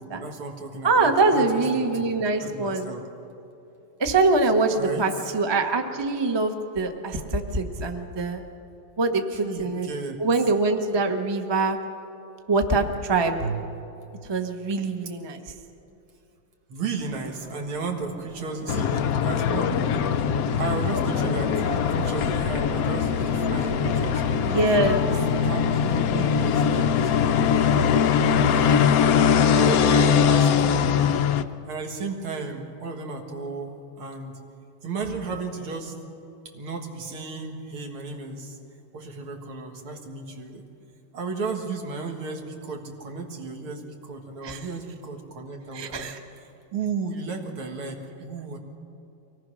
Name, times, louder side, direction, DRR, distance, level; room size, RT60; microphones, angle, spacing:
voice 1, 0.0-3.0 4.7-5.3 9.3-10.2 16.7-19.8 20.6-24.5 25.1-31.1 31.7-34.3 34.8-35.9 36.5-38.6 38.9-40.6 41.1-48.6, right 4 dB, 85° right, 3 dB, 2.7 m, -34 dB
voice 2, 0.8-2.9 4.0-8.4 9.0-9.9 10.2-11.8 12.5-13.7 14.3-15.4 24.4-25.0 44.4-44.6 45.7-46.2, right 3 dB, 20° right, 5 dB, 0.7 m, -24 dB
Subway metro underground, 17.0-29.3, right 2 dB, 65° right, 2.6 m, -40 dB
sound 1, 18.7-31.4, left 7 dB, 75° left, 0.8 m, -22 dB
24.0 x 18.0 x 6.3 m, 2.9 s
omnidirectional pair, 2.3 m